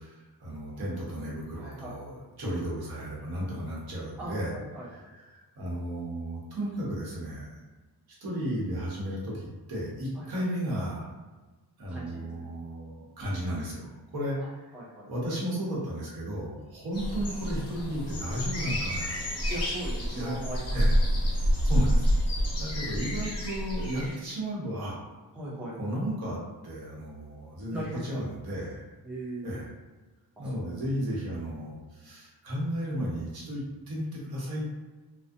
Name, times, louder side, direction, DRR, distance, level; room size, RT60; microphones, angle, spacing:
voice 1, 0.0-4.5 4.9-7.6 8.2-11.1 11.8-14.6 15.1-19.3 20.1-20.4 20.7-21.0 21.3-22.1 22.6-25.0 25.8-26.4 26.6-28.8 29.4-29.7 30.4-34.7, equal, 70° right, -5 dB, 0.9 m, -34 dB
voice 2, 1.5-1.9 4.2-4.9 10.2-10.4 11.9-12.3 14.4-14.5 14.7-15.1 19.5-20.8 25.3-25.8 27.7-28.2 29.0-29.5 30.4-30.9, right 1 dB, 5° right, -6 dB, 0.4 m, -39 dB
sound 1, 16.9-24.2, equal, 40° left, 0.8 m, -28 dB
2.4 x 2.0 x 2.5 m, 1.3 s
wide cardioid pair, 175°, 39 cm